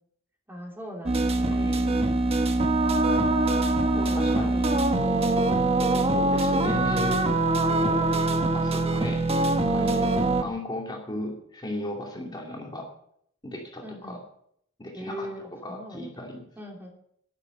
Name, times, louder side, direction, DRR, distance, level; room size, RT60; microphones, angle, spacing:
voice 1, 0.5-1.8 3.2-3.4 3.9-5.6 9.8-10.4 13.8-14.2 14.9-16.1 16.6-16.9, equal, 10° right, -1 dB, 3.0 m, -40 dB
sound 1, 1.1-10.4, right 2 dB, 30° right, 1.2 m, -23 dB
voice 2, 1.5-2.1 3.9-5.4 6.0-8.1 8.5-9.3 9.6-10.1 10.4-12.9 13.4-14.2 14.8-16.5, left 1 dB, 20° left, 0 dB, 2.6 m, -36 dB
11.5 x 10.5 x 6.4 m, 0.70 s
head